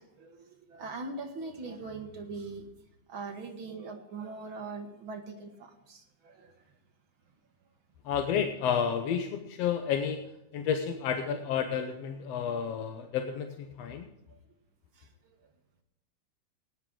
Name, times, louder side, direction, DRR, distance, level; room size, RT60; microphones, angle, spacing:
voice 1, 0.0-2.7 3.1-6.5 14.3-14.4 15.0-15.4, right 3 dB, 50° right, 3 dB, 1.9 m, -41 dB
voice 2, 8.1-10.2 10.5-14.1, left 7 dB, 70° left, 5 dB, 1.8 m, -31 dB
17.0 x 10.0 x 3.8 m, 0.92 s
omnidirectional pair, 3.5 m